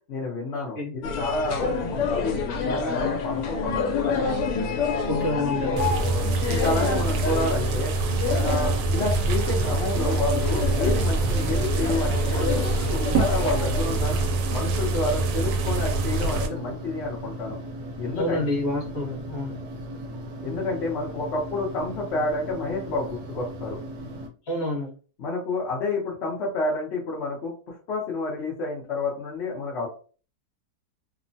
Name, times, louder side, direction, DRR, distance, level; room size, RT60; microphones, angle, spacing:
voice 1, 0.1-4.4 6.4-8.0 8.4-14.2 14.5-17.6 18.0-18.4 20.4-23.8 25.2-29.9, left 2 dB, 60° left, -4 dB, 0.7 m, -29 dB
sound 1, 1.0-14.3, left 3 dB, 80° left, 1.2 m, -28 dB
voice 2, 1.6-1.9 5.0-5.9 11.3-11.5 18.2-19.6 24.5-24.9, left 1 dB, 40° left, -3 dB, 1.1 m, -29 dB
sound 2, 5.8-16.5, right 3 dB, 90° right, 1.2 m, -25 dB
sound 3, 10.5-24.3, equal, 65° right, 1.2 m, -38 dB
3.0 x 2.1 x 2.6 m, 0.39 s
omnidirectional pair, 1.8 m